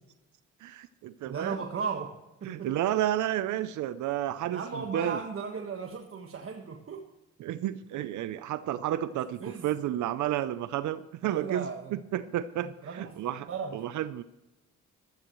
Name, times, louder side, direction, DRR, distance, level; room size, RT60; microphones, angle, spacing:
voice 1, 0.6-1.6 2.4-5.2 7.4-14.2, right 12 dB, 75° right, 13 dB, 0.6 m, -31 dB
voice 2, 1.3-2.7 4.5-7.1 9.4-9.7 11.2-12.0 12.8-13.2 13.5-13.8, right 5 dB, 45° right, 2 dB, 1.5 m, -36 dB
16.5 x 13.0 x 3.1 m, 1.0 s
cardioid pair, 90°, 30 cm